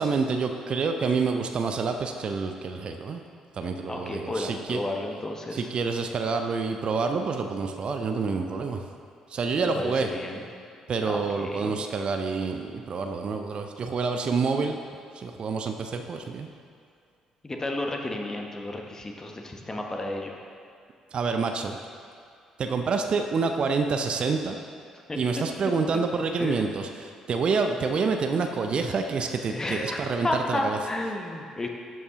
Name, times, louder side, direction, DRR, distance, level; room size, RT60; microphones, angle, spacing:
voice 1, 0.0-3.2 3.5-4.8 5.5-8.8 9.3-10.1 10.9-14.8 15.1-16.5 21.1-21.8 22.6-24.6 25.2-30.8, right 4 dB, 45° right, 6 dB, 0.5 m, -27 dB
voice 2, 3.9-5.7 9.6-10.4 11.0-11.8 17.4-20.4 25.1-25.2 26.4-26.6 29.5-31.7, left 1 dB, 25° left, 2 dB, 1.0 m, -32 dB
12.5 x 5.4 x 2.9 m, 2.3 s
figure-of-eight pair, 45°, 2 cm